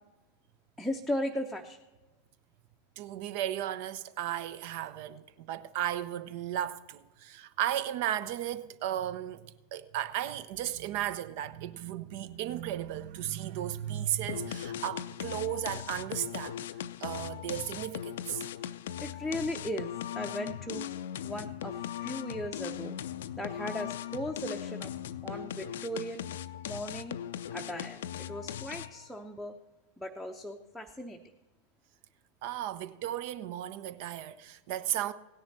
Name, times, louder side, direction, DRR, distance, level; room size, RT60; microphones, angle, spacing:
voice 1, 0.8-1.8 19.0-20.9 21.2-23.0 23.4-24.9 25.2-26.2 26.7-27.2 27.5-28.0 28.3-29.5 30.0-31.2, equal, ahead, 0.7 m, -37 dB
voice 2, 3.0-16.6 17.0-18.4 32.4-35.1, right 12 dB, 50° right, 0.6 m, -35 dB
sound 1, 14.3-29.1, left 10 dB, 60° left, 0.4 m, -39 dB
17.0 x 10.5 x 4.1 m
figure-of-eight pair, 90°, 0 cm